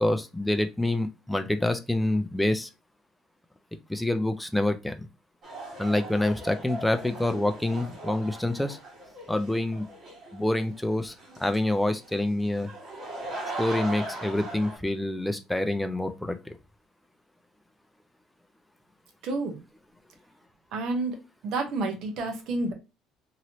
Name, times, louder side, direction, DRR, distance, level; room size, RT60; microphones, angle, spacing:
voice 1, 0.0-2.7 3.9-5.1 5.8-8.8 9.3-9.9 10.3-11.1 11.4-12.7 13.6-16.6, left 1 dB, 5° left, 8 dB, 0.3 m, -27 dB
sound 1, 5.4-14.8, right 1 dB, 50° right, 1.6 m, -39 dB
voice 2, 19.2-19.6 20.7-21.2 21.4-22.7, right 3 dB, 65° right, 5 dB, 0.9 m, -29 dB
2.9 x 2.8 x 2.7 m, 0.27 s
cardioid pair, 120°, 0 cm